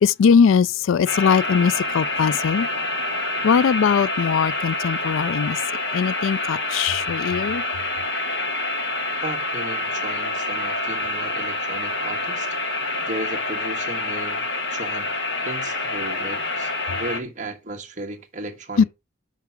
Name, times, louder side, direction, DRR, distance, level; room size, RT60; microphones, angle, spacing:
voice 1, 0.0-2.7 3.4-5.6 5.9-7.6 18.8-18.9, left 6 dB, 75° left, 0.3 m, -20 dB
sound 1, 1.1-17.2, left 2 dB, 60° left, 1.5 m, -27 dB
voice 2, 9.2-12.6 13.1-14.4 14.7-15.1 15.4-18.8, right 1 dB, 35° right, 1.4 m, -35 dB
5.8 x 5.7 x 5.8 m
head